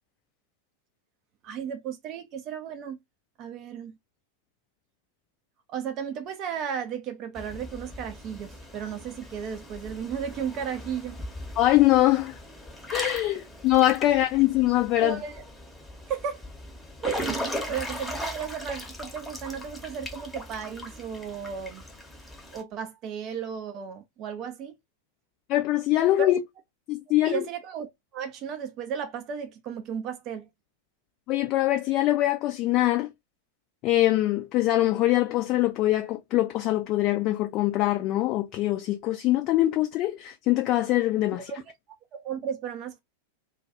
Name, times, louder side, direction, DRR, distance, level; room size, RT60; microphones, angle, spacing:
voice 1, 1.4-3.0 3.4-4.0 5.7-11.2 15.0-15.4 16.1-16.5 17.0-21.8 22.5-24.7 26.2-26.3 27.2-30.5 41.3-41.6 42.1-43.0, right 7 dB, 35° right, 0.4 m, -34 dB
Water / Splash splatter / Drip, 7.3-22.6, left 1 dB, 5° left, 0.8 m, -38 dB
voice 2, 11.6-12.3 12.9-15.2 25.5-26.4 26.9-27.4 31.3-33.1 33.8-41.5, left 15 dB, 40° left, 0.3 m, -23 dB
2.2 x 2.2 x 2.7 m
figure-of-eight pair, 90°, 0 cm